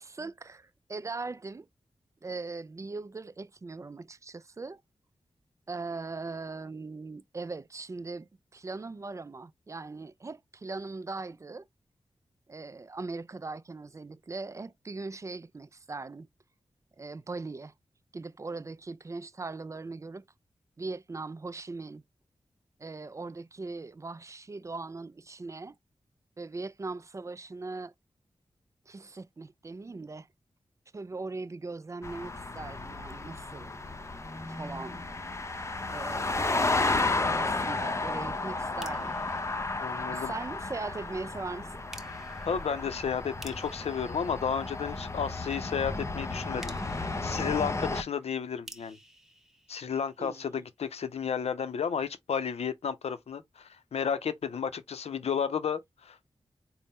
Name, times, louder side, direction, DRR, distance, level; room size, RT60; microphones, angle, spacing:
voice 1, 0.0-1.7 2.2-4.8 5.7-11.7 12.5-16.3 17.0-17.7 18.1-20.2 20.8-22.0 22.8-25.8 26.4-27.9 28.9-30.3 30.9-33.7 34.4-35.0 35.9-36.8 37.4-39.2 40.0-41.8 50.2-50.5, right 3 dB, 30° right, 0.3 m, -40 dB
sound 1, 32.0-48.0, left 3 dB, 25° left, 0.6 m, -33 dB
sound 2, 38.8-40.5 41.9-45.2 46.6-50.5, equal, 5° right, 0.9 m, -52 dB
voice 2, 39.8-40.3 42.4-49.0 49.7-56.3, left 7 dB, 80° left, 0.5 m, -32 dB
4.1 x 2.0 x 3.5 m
wide cardioid pair, 70°, 10 cm